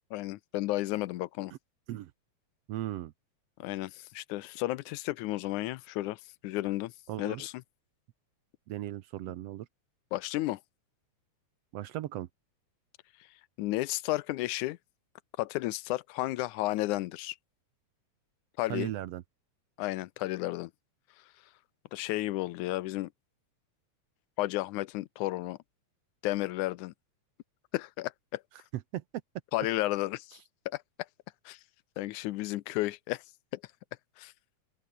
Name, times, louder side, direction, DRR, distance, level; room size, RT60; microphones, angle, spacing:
voice 1, 0.1-1.5 3.6-6.9 7.2-7.5 10.1-10.6 13.6-14.8 15.4-17.4 18.6-18.9 19.8-20.7 21.9-23.1 24.4-25.6 26.2-26.9 27.7-28.4 29.5-30.4 30.7-30.8 31.5-31.6 32.0-33.2 33.5-33.6 34.2-34.3, left 18 dB, 85° left, 2.2 m, -32 dB
voice 2, 2.7-3.1 7.1-7.5 8.7-9.7 11.7-12.3 18.7-19.2 28.7-29.0, right 14 dB, 70° right, 1.6 m, -37 dB
open air
omnidirectional pair, 3.4 m